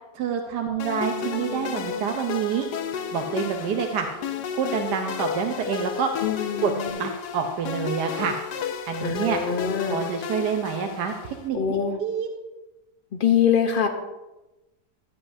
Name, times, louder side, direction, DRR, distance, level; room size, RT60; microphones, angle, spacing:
voice 1, 0.1-2.7 3.1-4.1 4.5-6.1 6.6-6.7 7.0-8.4 8.9-9.4 9.9-12.3, right 7 dB, 75° right, 3 dB, 1.3 m, -27 dB
Bass guitar, 0.7-6.9, right 5 dB, 15° right, 0.9 m, -43 dB
sound 1, 0.8-11.5, left 7 dB, 80° left, 1.2 m, -33 dB
voice 2, 6.2-7.0 9.0-10.1 11.5-12.0 13.1-13.9, left 7 dB, 45° left, 5 dB, 0.7 m, -24 dB
12.0 x 10.0 x 2.7 m, 1.0 s
omnidirectional pair, 1.9 m